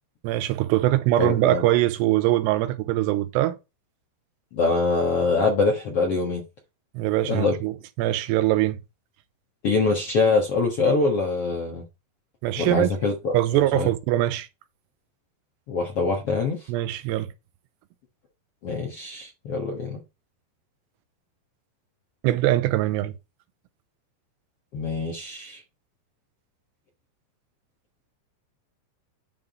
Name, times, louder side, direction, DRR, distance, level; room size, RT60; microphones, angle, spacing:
voice 1, 0.2-3.6 6.9-7.7 8.0-8.8 12.4-12.9 13.3-14.5 16.7-17.3 22.2-23.1, right 15 dB, 90° right, 2.8 m, -22 dB
voice 2, 1.2-1.6 4.5-6.4 7.2-7.5 9.6-11.8 12.6-13.9 15.7-16.7 18.6-20.0 24.7-25.6, left 3 dB, 60° left, 1.5 m, -24 dB
10.5 x 3.8 x 5.3 m
omnidirectional pair, 4.8 m